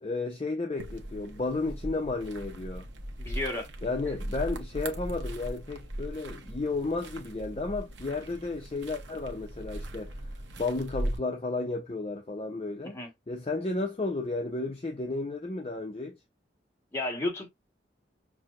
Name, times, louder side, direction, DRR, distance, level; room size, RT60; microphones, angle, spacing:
voice 1, 0.0-2.9 3.8-13.0 13.3-16.2, left 3 dB, 35° left, 0.5 m, -33 dB
sound 1, 0.8-11.2, right 1 dB, 85° right, 0.8 m, -39 dB
voice 2, 3.2-3.7 12.9-13.1 16.9-17.5, left 2 dB, 15° left, 1.3 m, -32 dB
6.0 x 2.0 x 2.4 m
head